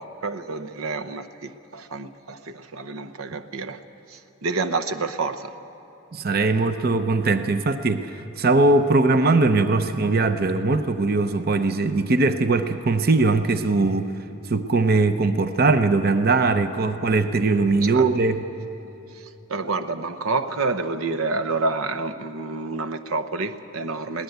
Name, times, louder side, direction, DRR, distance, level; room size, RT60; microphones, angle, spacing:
voice 1, 0.0-3.8 4.1-5.5 17.8-18.1 19.1-24.2, right 3 dB, 90° right, 10 dB, 0.9 m, -28 dB
voice 2, 6.1-14.1 14.5-18.4, right 3 dB, 45° right, 10 dB, 0.7 m, -20 dB
22.0 x 18.0 x 8.1 m, 3.0 s
head